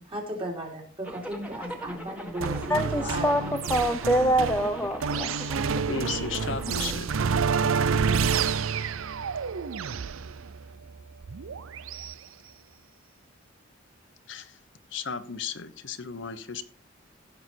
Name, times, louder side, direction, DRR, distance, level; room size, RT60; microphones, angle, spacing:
voice 1, 0.0-3.6 6.1-6.2, right 1 dB, 25° right, 0 dB, 3.3 m, -36 dB
Zipper (clothing), 1.0-7.0, equal, 5° right, 1.7 m, -41 dB
sound 1, 2.4-12.1, right 5 dB, 90° right, 0.6 m, -29 dB
voice 2, 2.7-3.4 3.7-5.5, equal, 10° left, 4 dB, 0.7 m, -25 dB
voice 3, 5.9-7.1 14.3-14.6 14.9-16.6, left 5 dB, 65° left, 9 dB, 1.1 m, -34 dB
16.0 x 6.8 x 4.5 m, 0.40 s
head